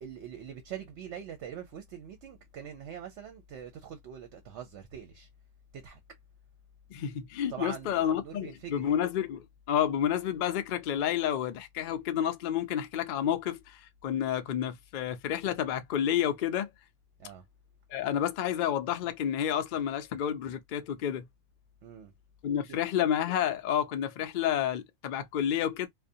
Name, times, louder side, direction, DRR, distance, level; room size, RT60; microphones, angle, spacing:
voice 1, 0.0-5.3 5.7-6.0 7.5-8.9 17.2-17.4 21.8-22.1 22.7-22.8, right 8 dB, 65° right, 0.8 m, -43 dB
voice 2, 6.9-16.7 17.9-21.3 22.4-25.9, left 10 dB, 70° left, 0.4 m, -30 dB
2.5 x 2.2 x 2.6 m
omnidirectional pair, 1.4 m